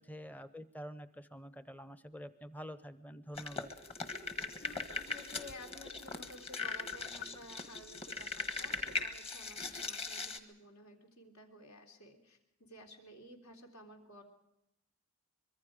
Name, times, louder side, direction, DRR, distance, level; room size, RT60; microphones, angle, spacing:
voice 1, 0.0-3.7, equal, 5° left, 13 dB, 0.7 m, -47 dB
sound 1, 3.4-10.4, left 4 dB, 25° left, 1.4 m, -40 dB
voice 2, 4.6-14.2, left 1 dB, 75° left, 3 dB, 3.5 m, -54 dB
24.5 x 22.0 x 5.0 m, 0.84 s
head